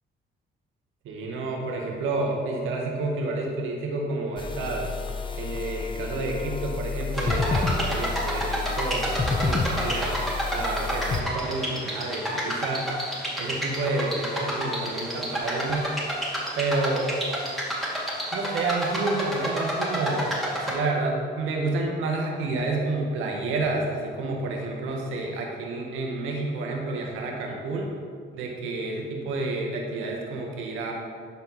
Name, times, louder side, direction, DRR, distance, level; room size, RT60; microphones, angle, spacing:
voice 1, 1.0-4.9 5.3-10.1 10.5-12.9 13.4-15.9 16.5-17.1 18.3-20.3 20.7-27.9 28.3-30.9, right 2 dB, 90° right, 0 dB, 1.5 m, -29 dB
sound 1, 4.4-11.2, left 4 dB, 25° left, 0.7 m, -30 dB
sound 2, 7.1-20.8, equal, ahead, 2.3 m, -30 dB
12.0 x 4.5 x 4.2 m, 2.1 s
cardioid pair, 90°, 20 cm